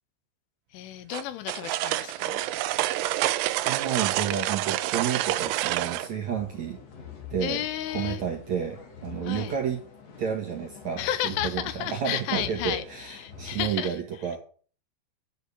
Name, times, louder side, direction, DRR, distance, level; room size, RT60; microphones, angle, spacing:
voice 1, 0.7-2.5 7.4-8.2 9.2-9.6 11.0-14.0, left 12 dB, 85° left, 3.5 m, -32 dB
sound 1, 1.1-6.1, right 15 dB, 90° right, 2.3 m, -28 dB
voice 2, 3.7-6.8 7.3-7.6 7.9-9.8 10.2-14.4, right 8 dB, 60° right, 2.0 m, -31 dB
sound 2, 5.7-13.7, left 7 dB, 50° left, 2.2 m, -44 dB
10.5 x 6.5 x 8.7 m
omnidirectional pair, 5.5 m